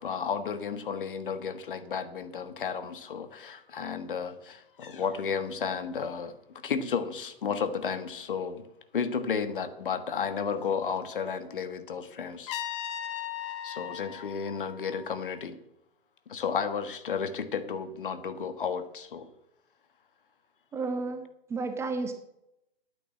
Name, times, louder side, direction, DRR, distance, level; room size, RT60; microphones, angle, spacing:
voice 1, 0.0-8.6 8.9-12.5 13.6-15.6 16.3-19.3, left 6 dB, 60° left, 10 dB, 1.6 m, -33 dB
Trumpet, 12.5-15.4, left 10 dB, 30° left, 0.9 m, -38 dB
voice 2, 20.7-22.1, right 3 dB, 10° right, 7 dB, 0.8 m, -32 dB
10.0 x 9.3 x 7.5 m, 0.83 s
figure-of-eight pair, 125°, 30 cm